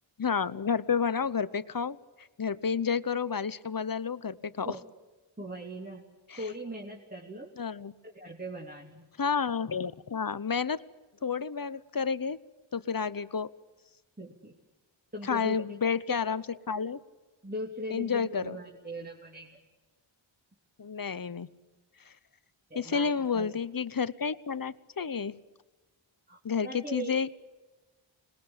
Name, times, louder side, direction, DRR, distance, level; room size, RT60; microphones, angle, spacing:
voice 1, 0.2-4.8 6.3-6.4 7.6-7.9 9.2-10.8 11.2-12.4 12.7-13.5 15.3-17.0 17.9-18.6 20.8-21.5 22.7-25.4 26.4-27.3, left 6 dB, 45° left, 16 dB, 0.9 m, -30 dB
voice 2, 5.4-6.0 6.4-7.5 8.0-9.1 14.2-14.6 15.1-15.8 16.1-16.2 17.4-19.6 22.7-23.5 26.3-27.2, equal, 20° right, -2 dB, 3.1 m, -40 dB
26.5 x 21.0 x 8.8 m, 1.2 s
wide cardioid pair, 85°, 49 cm